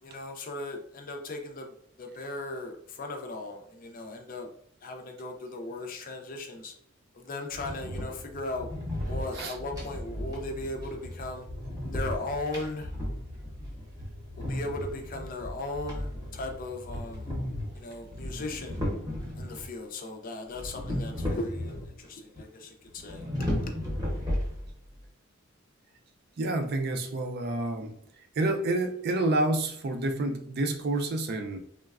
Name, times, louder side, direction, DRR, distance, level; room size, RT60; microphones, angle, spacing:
voice 1, 0.0-4.5 4.8-6.7 7.1-8.7 9.0-11.4 11.9-12.9 14.4-17.4 17.7-18.8 19.3-23.2 23.6-23.8, left 2 dB, 40° left, 3 dB, 0.4 m, -37 dB
sound 1, 7.5-19.7 20.5-22.1 22.4-22.5 23.0-24.9, left 1 dB, 15° right, 0.8 m, -35 dB
voice 2, 26.4-28.0 28.4-31.6, right 2 dB, 50° right, 6 dB, 0.4 m, -28 dB
3.2 x 2.1 x 2.3 m, 0.68 s
head